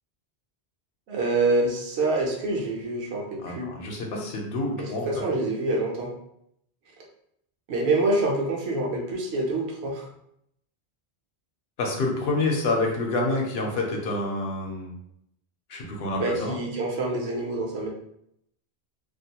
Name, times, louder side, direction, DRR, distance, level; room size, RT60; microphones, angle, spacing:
voice 1, 1.1-3.7 4.8-6.1 7.7-10.1 16.2-17.9, right 2 dB, 80° right, -1 dB, 0.9 m, -26 dB
voice 2, 3.4-5.2 11.8-14.9 15.7-16.6, left 2 dB, 75° left, 0 dB, 0.9 m, -28 dB
2.5 x 2.2 x 2.8 m, 0.75 s
omnidirectional pair, 1.1 m